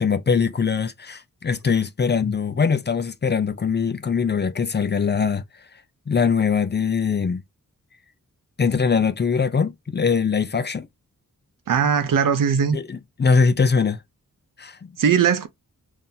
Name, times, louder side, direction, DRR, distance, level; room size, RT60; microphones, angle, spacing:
voice 1, 0.0-5.4 6.1-7.4 8.6-10.9 12.7-14.0 14.6-14.9, left 5 dB, 35° left, 0.4 m, -22 dB
voice 2, 11.7-12.8 15.0-15.5, right 7 dB, 75° right, 0.6 m, -19 dB
3.8 x 2.7 x 2.7 m
wide cardioid pair, 80°, 33 cm